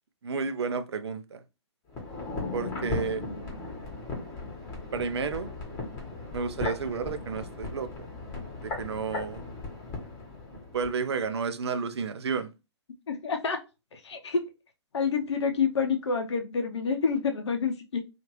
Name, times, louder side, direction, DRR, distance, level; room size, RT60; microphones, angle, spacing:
voice 1, 0.2-1.4 2.5-3.2 4.9-5.5 6.3-7.9 8.6-9.4 10.5-12.5, right 5 dB, 70° right, 0.5 m, -31 dB
sound 1, 1.9-11.0 11.2-11.3, left 3 dB, 20° left, 1.2 m, -37 dB
voice 2, 13.1-13.6 13.9-14.4 14.9-18.0, left 5 dB, 75° left, 0.6 m, -28 dB
2.8 x 2.5 x 3.0 m
hypercardioid pair, 130°, 15 cm